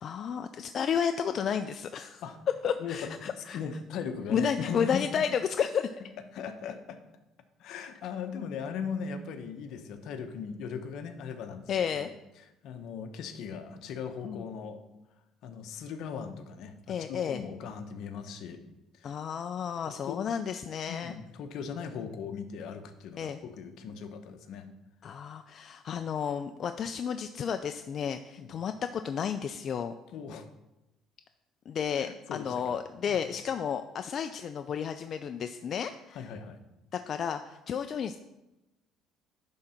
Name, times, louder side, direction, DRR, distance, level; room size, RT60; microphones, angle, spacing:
voice 1, 0.0-2.2 2.6-3.6 4.3-5.9 11.7-12.1 14.2-14.4 16.9-17.4 19.0-21.1 23.2-23.4 25.0-29.9 31.7-36.2 36.9-38.2, left 7 dB, 45° left, 8 dB, 0.4 m, -32 dB
voice 2, 2.8-5.1 6.3-7.0 7.6-12.1 12.6-14.8 15.4-18.6 19.0-19.1 19.8-20.2 20.9-24.7 28.4-28.5 30.1-30.5 32.0-32.8 33.1-33.2 36.1-36.6, left 6 dB, 70° left, 7 dB, 0.9 m, -38 dB
10.5 x 3.8 x 5.7 m, 0.96 s
cardioid pair, 125°, 0 cm